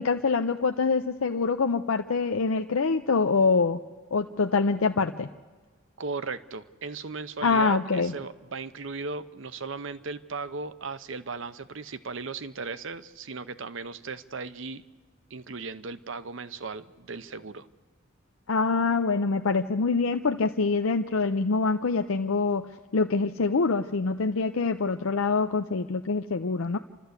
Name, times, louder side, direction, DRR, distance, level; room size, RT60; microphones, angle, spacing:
voice 1, 0.0-3.8 4.1-5.3 7.4-8.1 18.5-22.7 22.9-26.8, left 4 dB, 75° left, 6 dB, 0.6 m, -25 dB
voice 2, 6.0-14.8 15.3-17.7, right 4 dB, 60° right, 13 dB, 0.7 m, -37 dB
29.0 x 13.0 x 8.1 m, 1.4 s
head